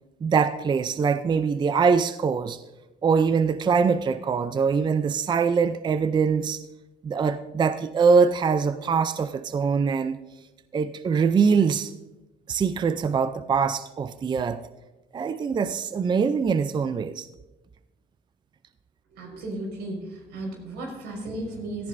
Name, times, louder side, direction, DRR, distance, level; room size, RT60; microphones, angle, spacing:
voice 1, 0.2-2.6 3.0-6.6 7.0-10.2 10.7-11.9 12.5-14.6 15.1-17.3, right 5 dB, 25° right, 0.4 m, -23 dB
voice 2, 19.2-21.9, right 1 dB, 85° right, 5.1 m, -34 dB
17.0 x 13.5 x 2.6 m
cardioid pair, 110°, 17 cm